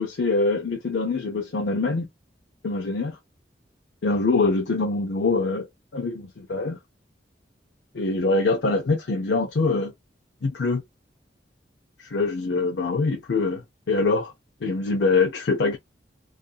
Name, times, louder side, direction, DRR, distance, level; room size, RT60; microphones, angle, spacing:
voice 1, 0.0-2.1 2.6-3.2 4.0-5.7 5.9-6.8 7.9-9.9 10.4-10.8 12.0-14.3 14.6-15.8, left 3 dB, 85° left, 0.6 m, -24 dB
2.7 x 2.5 x 2.2 m
head